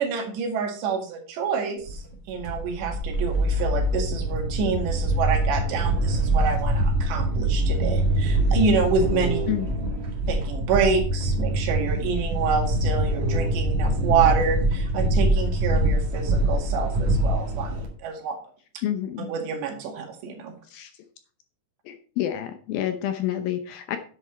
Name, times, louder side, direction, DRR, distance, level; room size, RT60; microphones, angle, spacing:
voice 1, 0.0-9.5 10.3-18.4 19.2-20.5, right 5 dB, 85° right, 3 dB, 4.2 m, -27 dB
sound 1, 1.9-17.9, right 1 dB, 50° right, 2.9 m, -24 dB
voice 2, 9.5-9.9 18.8-19.3 20.7-20.9 21.9-24.0, left 11 dB, 75° left, 7 dB, 2.3 m, -29 dB
10.5 x 7.6 x 4.5 m, 0.43 s
omnidirectional pair, 4.9 m